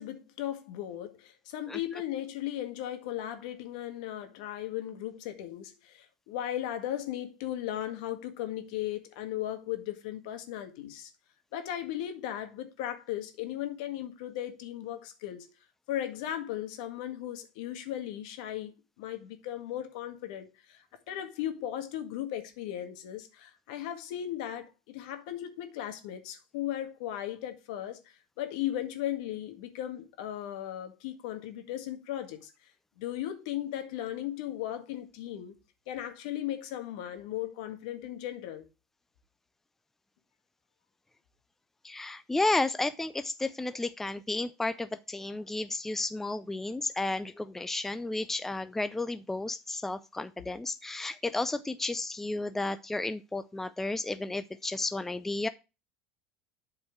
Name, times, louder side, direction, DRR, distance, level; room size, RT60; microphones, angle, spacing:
voice 1, 0.0-11.1 11.5-15.5 15.9-32.5 33.0-35.6 35.9-38.7, left 12 dB, 75° left, 1.8 m, -37 dB
voice 2, 41.8-55.5, left 2 dB, 10° left, 0.5 m, -32 dB
8.4 x 4.7 x 4.6 m
supercardioid pair, 110°, 4 cm